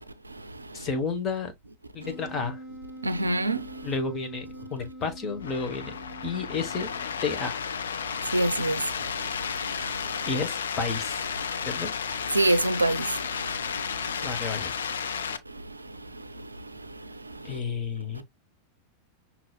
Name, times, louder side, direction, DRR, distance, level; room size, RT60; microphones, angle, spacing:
voice 1, 0.7-1.5 1.9-2.6 3.8-4.4 4.7-5.9 6.2-6.9 7.2-7.5 10.2-11.2 11.6-11.9 14.2-14.7 17.4-18.2, left 4 dB, 25° left, 1.4 m, -31 dB
Wind instrument woodwind instrument, 2.0-7.4, right 1 dB, 10° left, 2.4 m, -44 dB
voice 2, 3.0-3.6 8.3-8.8 12.3-13.1, right 2 dB, 80° right, 0.4 m, -23 dB
sound 1, 5.4-15.4, left 6 dB, 65° left, 0.5 m, -32 dB
6.0 x 3.0 x 2.4 m
figure-of-eight pair, 90°, 0 cm